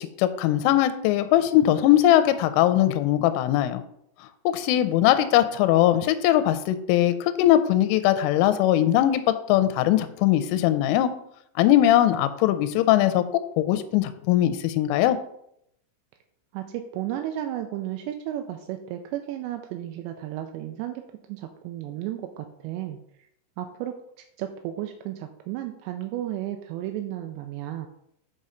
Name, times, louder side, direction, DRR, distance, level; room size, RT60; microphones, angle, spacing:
voice 1, 0.0-3.8 4.5-11.1 11.6-13.2 13.6-15.2, left 12 dB, 85° left, 11 dB, 3.1 m, -20 dB
voice 2, 16.5-21.0 21.3-23.0 23.6-23.9 24.4-27.9, right 12 dB, 85° right, 5 dB, 2.5 m, -33 dB
6.8 x 5.4 x 5.0 m, 0.74 s
omnidirectional pair, 5.6 m